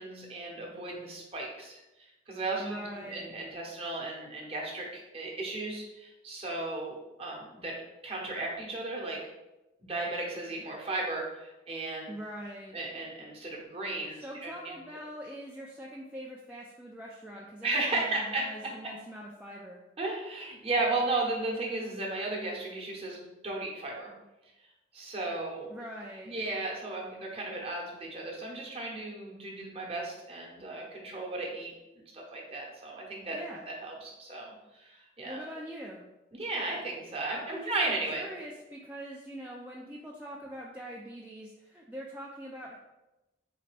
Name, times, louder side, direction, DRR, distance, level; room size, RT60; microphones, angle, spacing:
voice 1, 0.0-1.8 2.3-7.8 8.0-9.3 9.9-12.1 12.7-14.7 17.6-18.4 20.0-24.1 24.9-25.7 26.3-31.7 32.1-33.4 33.7-35.4 36.3-38.3, right 2 dB, 30° right, -2 dB, 0.8 m, -35 dB
voice 2, 2.6-3.3 12.1-12.8 14.2-19.8 25.7-26.3 33.3-33.7 35.2-36.0 37.3-42.8, equal, 10° right, -3 dB, 0.3 m, -43 dB
3.9 x 3.3 x 3.2 m, 0.98 s
head